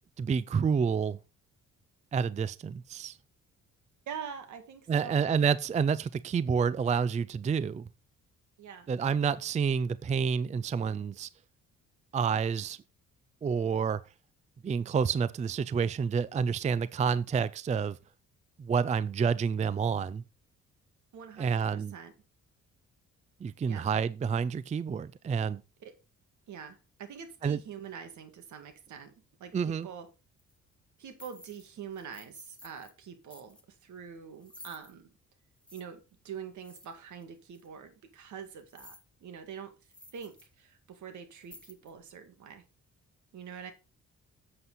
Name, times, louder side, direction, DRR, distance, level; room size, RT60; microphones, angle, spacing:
voice 1, 0.2-1.2 2.1-3.2 4.9-7.9 8.9-11.3 12.1-12.8 13.4-14.0 14.6-18.0 18.6-20.2 21.4-21.9 23.4-25.6 27.4-27.6 29.5-29.9, right 6 dB, 25° right, 0.4 m, -29 dB
voice 2, 4.1-5.3 8.6-8.9 21.1-22.1 23.6-23.9 25.8-25.9 26.5-29.1 29.4-30.1 31.0-35.1 35.7-36.0 36.2-39.7 40.1-42.6 43.3-43.7, right 7 dB, 70° right, 2.0 m, -45 dB
sound 1, 30.4-30.5 31.1-31.7 31.9-33.0 33.3-33.6 34.4-34.9 35.6-35.8 36.6-37.2 37.5-37.7 38.6-39.1 39.5-39.6 39.9-40.5 40.8-40.9 41.4-42.0, left 1 dB, 5° left, 1.2 m, -53 dB
7.7 x 7.6 x 4.0 m
cardioid pair, 90°, 30 cm